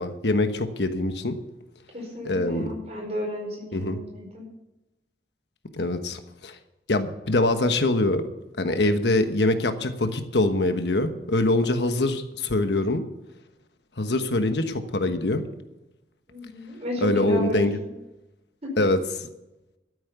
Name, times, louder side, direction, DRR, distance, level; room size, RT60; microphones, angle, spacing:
voice 1, 0.0-1.4 2.2-2.7 3.7-4.0 5.7-6.6 6.9-8.3 8.6-13.0 14.0-15.4 17.0-17.8 18.8-19.3, left 2 dB, 80° left, 8 dB, 1.2 m, -24 dB
voice 2, 1.9-4.4 16.3-17.9 18.6-18.7, equal, 40° right, 0 dB, 4.7 m, -33 dB
13.0 x 8.7 x 6.9 m, 0.97 s
head